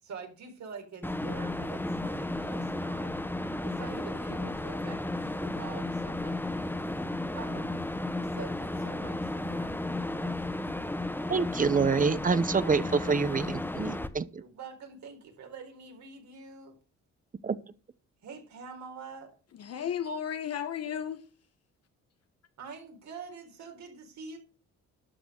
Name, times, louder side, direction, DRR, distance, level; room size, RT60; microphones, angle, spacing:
voice 1, 0.0-3.2 3.6-6.8 7.3-7.8 8.1-10.4 14.4-16.7 18.2-19.3 22.6-24.4, right 5 dB, 65° right, 4.4 m, -46 dB
sound 1, 1.0-14.1, left 2 dB, 5° left, 1.2 m, -33 dB
voice 2, 11.3-14.4 17.4-17.6, right 5 dB, 25° right, 0.9 m, -27 dB
voice 3, 19.6-21.3, left 8 dB, 55° left, 1.1 m, -34 dB
12.0 x 6.1 x 6.5 m
cardioid pair, 90°, 30 cm